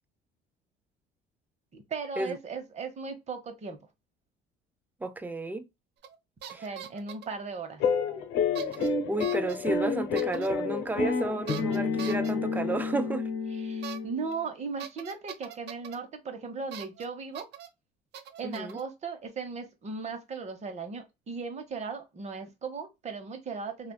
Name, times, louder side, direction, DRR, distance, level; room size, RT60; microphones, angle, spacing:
voice 1, 1.7-3.8 6.6-7.8 13.6-17.5 18.4-23.9, right 4 dB, 35° right, 1.0 m, -37 dB
voice 2, 5.0-5.7 6.5-6.7 8.8-13.3 18.4-18.8, right 2 dB, 10° right, 0.4 m, -32 dB
sound 1, 6.0-6.2 6.4-7.3 8.5-8.9 9.2-9.6 10.2-10.5 11.5-12.3 13.8-14.0 14.3-14.4 14.8-16.0 16.7-17.1 17.3-17.7 18.1-18.8, right 10 dB, 60° right, 0.6 m, -41 dB
sound 2, 7.8-14.3, left 5 dB, 80° left, 0.8 m, -29 dB
3.3 x 2.4 x 2.3 m
cardioid pair, 115°, 20 cm